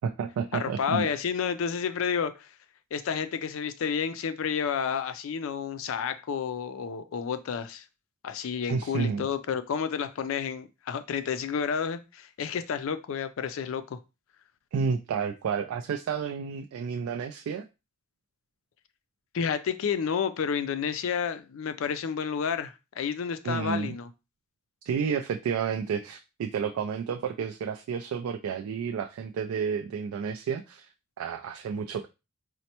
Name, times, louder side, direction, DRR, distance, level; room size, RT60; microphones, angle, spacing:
voice 1, 0.0-1.1 8.7-9.2 14.7-17.6 23.4-24.0 24.9-30.9 31.2-32.1, right 6 dB, 80° right, 0.3 m, -31 dB
voice 2, 0.6-2.5 2.9-7.8 8.2-14.0 19.3-24.1, left 7 dB, 65° left, 0.4 m, -30 dB
4.2 x 2.1 x 2.8 m
head